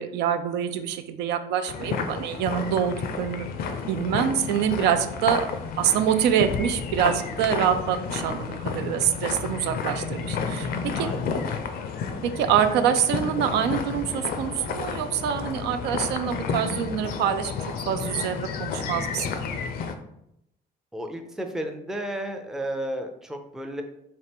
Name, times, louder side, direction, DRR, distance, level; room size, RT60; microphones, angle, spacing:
voice 1, 0.0-3.5 3.9-5.5 5.8-11.1 12.2-17.5 17.9-19.3, right 9 dB, 85° right, 8 dB, 0.4 m, -25 dB
sound 1, 1.7-19.9, left 5 dB, 60° left, 0.5 m, -31 dB
voice 2, 10.9-11.6 20.9-23.8, right 1 dB, 5° right, 5 dB, 0.4 m, -33 dB
4.2 x 2.4 x 3.4 m, 0.80 s
cardioid pair, 110°, 17 cm